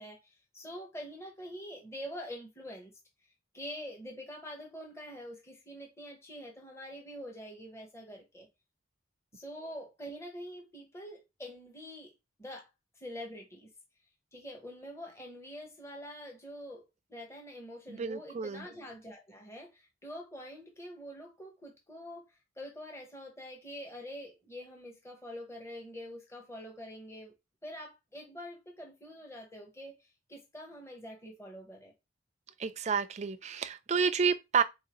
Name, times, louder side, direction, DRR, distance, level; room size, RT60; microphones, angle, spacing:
voice 1, 0.0-2.9 3.5-8.5 9.3-12.1 12.4-12.7 13.0-13.7 14.3-27.3 27.6-31.9, equal, 15° left, 0.9 m, -45 dB
voice 2, 17.9-18.6 32.6-34.6, right 6 dB, 35° right, 0.4 m, -30 dB
4.0 x 3.6 x 3.0 m
head